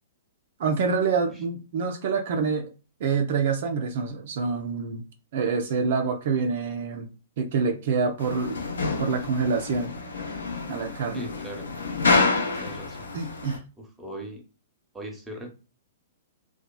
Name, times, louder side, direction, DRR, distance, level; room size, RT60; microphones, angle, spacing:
voice 1, 0.6-2.7 3.0-5.0 5.3-7.1 7.4-8.6 9.0-9.9 10.7-11.3 13.1-13.6, right 5 dB, 55° right, 0.4 m, -26 dB
sound 1, 8.2-13.6, left 3 dB, 80° left, 0.6 m, -28 dB
voice 2, 11.1-11.7 12.4-13.1 13.8-14.4 14.9-15.5, right 1 dB, 5° right, 0.8 m, -39 dB
2.8 x 2.2 x 2.2 m
hypercardioid pair, 115°, 0 cm